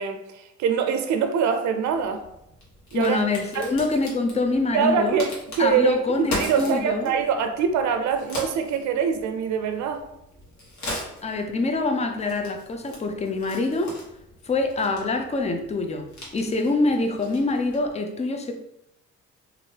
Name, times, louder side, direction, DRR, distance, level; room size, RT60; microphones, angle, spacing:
voice 1, 0.0-2.2 2.9-3.2 3.5-3.7 4.7-10.0, right 6 dB, 70° right, 6 dB, 0.5 m, -24 dB
Crack, 1.9-18.0, left 1 dB, 65° left, 1.2 m, -39 dB
voice 2, 2.9-5.2 5.6-7.1 11.2-13.9 14.5-16.1 16.3-18.5, left 3 dB, 20° left, 5 dB, 0.4 m, -25 dB
3.1 x 2.5 x 2.8 m, 0.83 s
cardioid pair, 90°, 30 cm